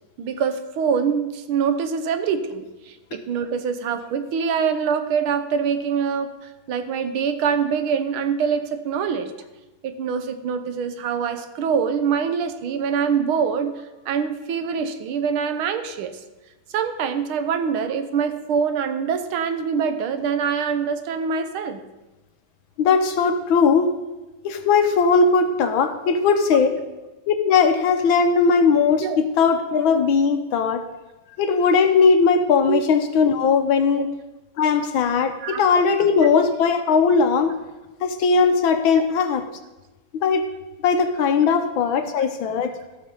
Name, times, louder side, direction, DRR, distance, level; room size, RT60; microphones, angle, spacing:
voice 1, 0.2-6.3 6.7-9.3 9.8-13.7 14.1-16.2 16.7-21.8 29.0-29.2 32.7-32.8 35.4-35.6 36.0-36.3, right 6 dB, 80° right, 9 dB, 1.7 m, -24 dB
voice 2, 22.8-23.9 24.4-26.8 27.3-30.8 31.4-34.1 34.6-37.5 38.0-39.4 40.1-40.5 40.8-42.7, left 5 dB, 75° left, 7 dB, 1.6 m, -19 dB
14.5 x 6.4 x 5.4 m, 1.1 s
omnidirectional pair, 2.3 m